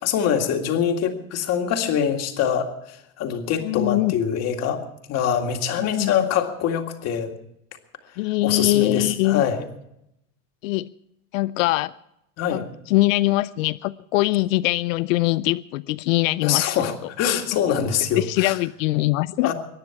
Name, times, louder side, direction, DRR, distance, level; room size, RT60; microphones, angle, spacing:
voice 1, 0.0-4.8 5.1-7.3 8.4-9.7 12.4-12.6 16.4-18.6 19.4-19.5, left 8 dB, 40° left, 4 dB, 2.0 m, -24 dB
voice 2, 3.6-4.1 5.8-6.2 8.2-9.4 10.6-10.9 11.3-11.9 12.5-16.7 18.2-19.5, left 18 dB, 85° left, 15 dB, 0.5 m, -22 dB
23.0 x 9.8 x 5.8 m, 0.80 s
supercardioid pair, 145°, 39 cm